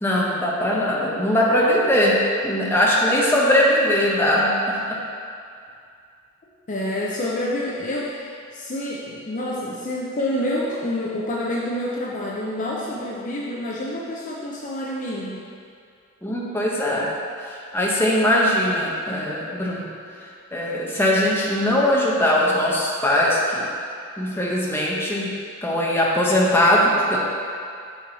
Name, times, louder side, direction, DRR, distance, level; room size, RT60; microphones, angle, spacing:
voice 1, 0.0-2.2 2.4-5.0 16.2-17.1 17.4-19.9 20.2-23.7 24.2-25.3 25.6-27.2, left 1 dB, 10° left, -5 dB, 0.9 m, -20 dB
voice 2, 6.7-15.4, left 1 dB, 35° left, -4 dB, 0.6 m, -28 dB
6.2 x 5.7 x 4.0 m, 2.3 s
head